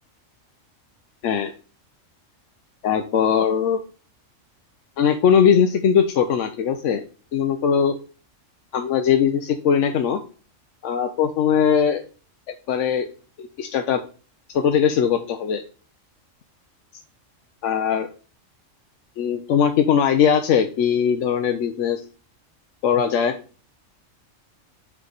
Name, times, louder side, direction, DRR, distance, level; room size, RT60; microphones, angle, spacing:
voice 1, 2.8-3.8 5.0-7.0 7.3-8.0 8.7-10.2 10.8-12.0 12.7-13.1 13.4-14.0 14.5-15.6 17.6-18.1 19.2-22.0 22.8-23.3, left 7 dB, 70° left, 6 dB, 0.9 m, -20 dB
8.3 x 3.6 x 3.9 m, 0.37 s
omnidirectional pair, 1.3 m